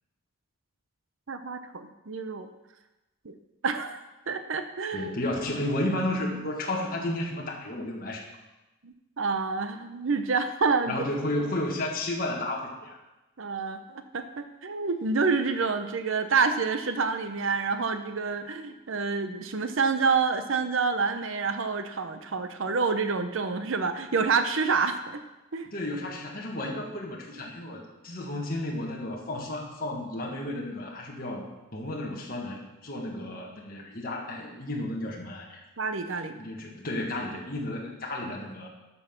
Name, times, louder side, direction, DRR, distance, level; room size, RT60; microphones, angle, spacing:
voice 1, 1.3-2.5 3.2-3.4 3.6-4.0 4.3-5.1 8.8-11.0 13.4-25.2 25.5-25.7 35.8-36.4, right 4 dB, 70° right, 8 dB, 0.7 m, -28 dB
voice 2, 4.9-8.3 10.9-13.0 25.7-35.6 36.3-38.7, left 1 dB, 45° left, -2 dB, 1.6 m, -32 dB
13.0 x 5.6 x 5.9 m, 1.0 s
head